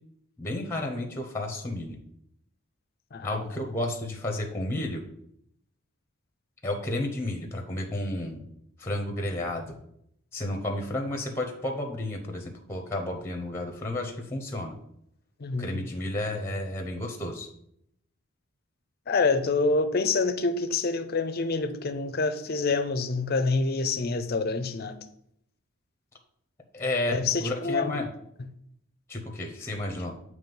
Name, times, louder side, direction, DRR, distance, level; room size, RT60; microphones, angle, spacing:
voice 1, 0.4-2.0 3.2-5.0 6.6-8.5 8.8-9.8 10.3-14.7 15.6-17.5 26.7-28.1 29.1-30.1, left 1 dB, 10° left, 0.7 m, -32 dB
voice 2, 15.4-15.8 19.1-25.0 27.1-28.0, left 3 dB, 45° left, 0.5 m, -27 dB
7.2 x 3.2 x 5.4 m
head